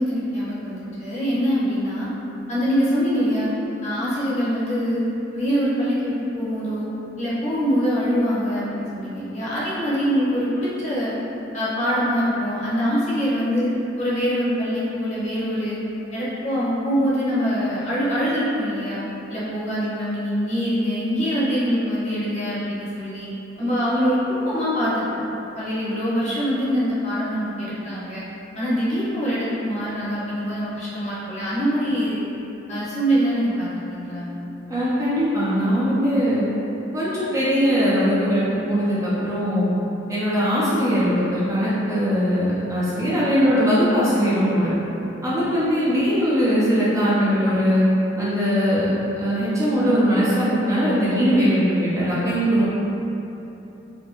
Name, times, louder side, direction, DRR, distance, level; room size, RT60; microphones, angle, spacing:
voice 1, 0.0-2.1 2.5-3.5 3.8-6.9 7.2-11.1 11.5-15.8 16.1-19.0 19.3-23.3 23.6-25.1 25.5-28.2 28.5-32.3 32.7-34.3, equal, 40° left, -9 dB, 0.9 m, -24 dB
voice 2, 34.7-36.4 36.9-39.7 40.1-44.7 45.2-47.8 48.2-48.9 49.2-52.7, equal, 15° right, -9 dB, 0.5 m, -20 dB
4.2 x 2.1 x 2.9 m, 3.0 s
head